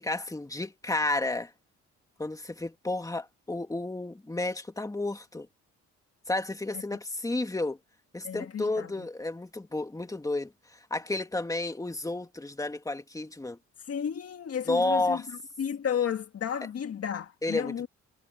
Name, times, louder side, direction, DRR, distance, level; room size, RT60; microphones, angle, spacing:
voice 1, 0.0-1.5 2.2-5.5 6.3-7.8 8.1-13.6 14.7-15.2 17.4-17.9, left 2 dB, 10° left, 2.4 m, -31 dB
voice 2, 8.2-8.9 13.9-15.2 15.6-17.9, left 8 dB, 50° left, 1.8 m, -32 dB
cardioid pair, 90°, 30 cm